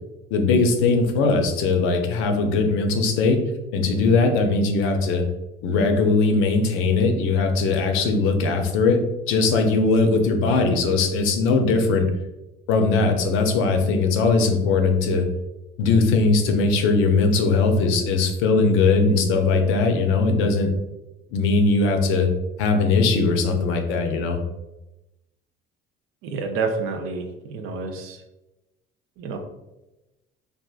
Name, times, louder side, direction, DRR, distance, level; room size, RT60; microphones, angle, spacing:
voice 1, 0.3-3.4 3.7-5.2 5.6-12.1 12.7-15.2 15.8-20.7 21.3-22.3 22.6-24.4, left 3 dB, 75° left, 5 dB, 0.6 m, -20 dB
voice 2, 26.2-28.2 29.2-29.4, right 4 dB, 75° right, 5 dB, 0.5 m, -29 dB
3.4 x 2.4 x 2.4 m, 0.99 s
supercardioid pair, 90°, 21 cm